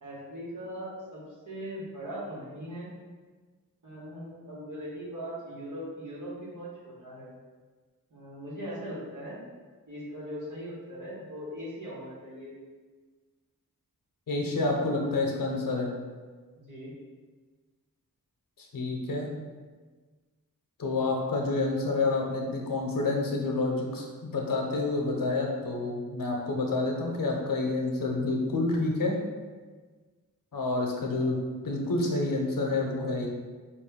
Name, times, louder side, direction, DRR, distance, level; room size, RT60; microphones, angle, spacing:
voice 1, 0.0-2.9 3.8-7.3 8.1-9.4 9.9-12.5 16.6-17.0 31.1-31.4, equal, 60° right, -7 dB, 1.5 m, -40 dB
voice 2, 14.3-15.9 18.6-19.3 20.8-29.1 30.5-31.4 31.6-33.3, left 2 dB, 75° left, 0 dB, 0.8 m, -28 dB
4.4 x 2.5 x 3.6 m, 1.4 s
wide cardioid pair, 115°, 34 cm